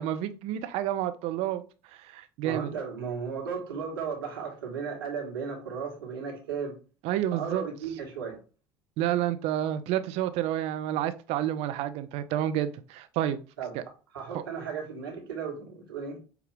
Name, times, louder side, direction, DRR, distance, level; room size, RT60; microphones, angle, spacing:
voice 1, 0.0-1.6 1.9-2.7 7.0-7.6 9.0-13.4 13.7-13.8, right 12 dB, 60° right, 0.6 m, -29 dB
voice 2, 2.4-6.8 7.3-8.4 13.6-13.8 14.1-16.2, right 6 dB, 85° right, 1.4 m, -35 dB
5.9 x 2.3 x 3.4 m
hypercardioid pair, 70°, 12 cm